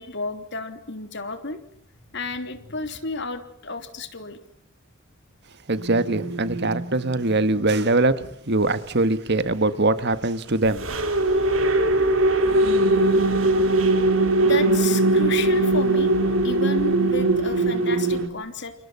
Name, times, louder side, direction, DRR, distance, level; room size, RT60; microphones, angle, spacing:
voice 1, 0.0-1.6 2.1-4.4 14.4-16.1 16.4-18.7, left 3 dB, 60° left, 3.3 m, -32 dB
voice 2, 5.7-10.9, right 2 dB, 55° right, 1.7 m, -22 dB
sound 1, 5.8-7.6 10.6-18.3, right 2 dB, 70° right, 4.2 m, -21 dB
29.5 x 29.5 x 5.8 m
head